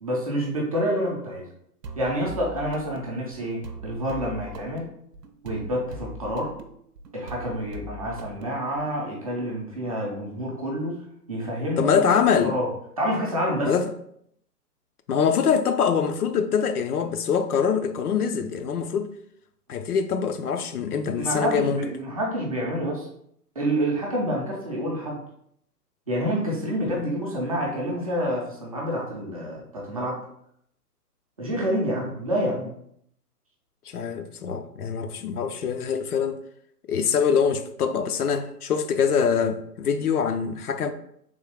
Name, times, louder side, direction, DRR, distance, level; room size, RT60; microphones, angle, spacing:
voice 1, 0.0-1.5 2.0-4.8 5.4-6.5 7.1-11.0 11.3-12.1 12.4-12.7 13.0-13.7 21.1-23.1 23.6-25.2 26.1-30.2 31.4-32.7, equal, 25° right, 0.5 m, -28 dB
sound 1, 1.8-9.0, right 2 dB, 80° right, 0.7 m, -40 dB
voice 2, 11.8-12.6 13.6-13.9 15.1-19.1 19.7-21.8 26.9-27.0 33.9-36.4 36.9-40.9, left 6 dB, 65° left, 0.5 m, -24 dB
3.5 x 2.7 x 3.4 m
figure-of-eight pair, 135°, 48 cm